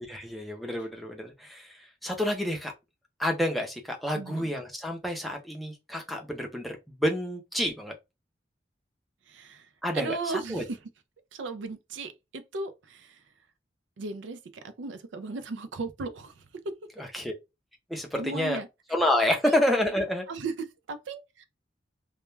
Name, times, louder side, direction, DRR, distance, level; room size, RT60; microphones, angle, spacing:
voice 1, 0.1-2.7 3.2-7.9 9.8-10.6 17.0-17.3 17.9-18.6 18.9-20.3, left 1 dB, ahead, 0.5 m, -29 dB
voice 2, 4.1-4.5 9.3-9.7 9.9-10.8 11.3-13.2 14.0-14.4 14.6-16.4 18.2-18.7 19.4-19.6 20.3-21.4, right 3 dB, 85° right, 0.4 m, -36 dB
2.2 x 2.2 x 3.1 m
head